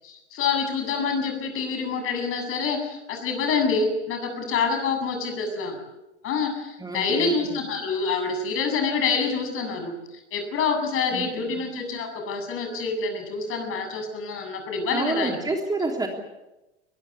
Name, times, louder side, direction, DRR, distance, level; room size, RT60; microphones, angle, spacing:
voice 1, 0.0-5.8 6.2-9.9 10.3-15.4, left 5 dB, 40° left, 6 dB, 7.7 m, -27 dB
voice 2, 6.8-7.6 11.1-11.6 14.9-16.1, right 3 dB, 10° right, 2 dB, 3.3 m, -29 dB
23.0 x 21.5 x 8.3 m, 0.99 s
figure-of-eight pair, 90°, 35 cm